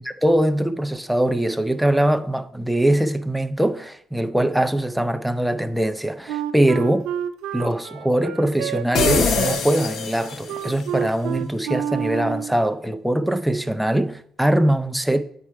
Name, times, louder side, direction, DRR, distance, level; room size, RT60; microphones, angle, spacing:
voice 1, 0.2-7.1 7.5-15.2, right 1 dB, ahead, 0.4 m, -22 dB
Wind instrument woodwind instrument, 6.3-12.6, right 10 dB, 90° right, 0.5 m, -29 dB
sound 1, 8.9-10.8, left 5 dB, 55° left, 0.7 m, -23 dB
8.4 x 4.3 x 4.6 m
cardioid pair, 135°, 0 cm